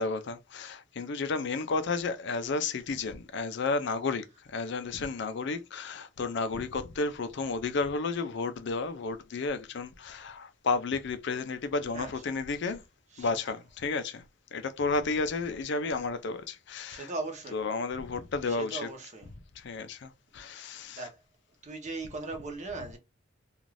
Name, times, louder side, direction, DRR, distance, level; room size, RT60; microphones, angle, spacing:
voice 1, 0.0-4.2 4.5-12.8 13.2-14.2 14.5-17.1 17.5-18.9 19.6-21.1, left 4 dB, 65° left, 0.5 m, -32 dB
voice 2, 16.9-17.6 18.4-19.3 20.9-21.2 21.6-23.0, right 3 dB, 40° right, 0.9 m, -38 dB
2.6 x 2.4 x 3.1 m
head